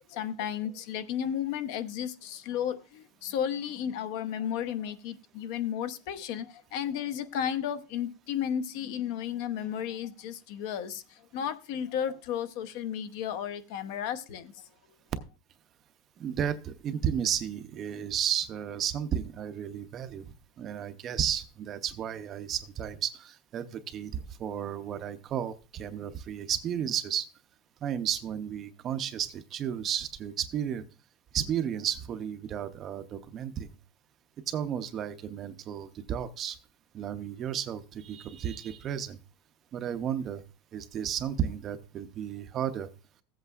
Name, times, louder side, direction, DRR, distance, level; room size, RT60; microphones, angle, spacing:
voice 1, 0.1-11.0 11.3-14.5, left 9 dB, 55° left, 0.8 m, -33 dB
voice 2, 16.2-20.3 20.6-27.3 27.8-30.8 31.3-33.7 34.5-36.6 36.9-39.2 39.7-40.4 40.7-42.9, right 9 dB, 25° right, 0.6 m, -33 dB
15.5 x 8.1 x 2.4 m
supercardioid pair, 175°, 0 cm